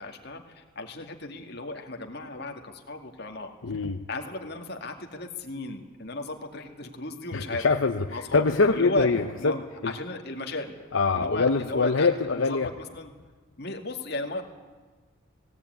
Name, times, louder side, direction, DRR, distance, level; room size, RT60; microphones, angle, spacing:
voice 1, 0.0-3.5 4.1-7.7 8.1-8.4 8.7-9.1 9.4-9.6 9.8-10.8 11.1-13.1 13.6-14.4, left 2 dB, 50° left, 3 dB, 2.2 m, -35 dB
voice 2, 3.6-4.0 7.3-9.6 9.8-9.9 10.9-12.7, left 4 dB, 75° left, 5 dB, 0.8 m, -24 dB
18.0 x 17.5 x 9.4 m, 1.4 s
head